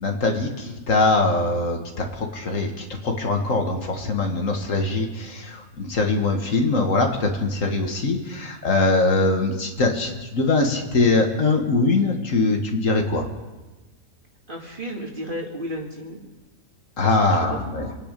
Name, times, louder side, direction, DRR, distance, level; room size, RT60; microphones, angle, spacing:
voice 1, 0.0-13.3 17.0-17.9, left 3 dB, 65° left, 3 dB, 2.0 m, -22 dB
voice 2, 14.5-16.2 17.0-18.0, equal, 40° right, 0 dB, 2.3 m, -34 dB
27.5 x 9.8 x 5.2 m, 1.2 s
omnidirectional pair, 1.4 m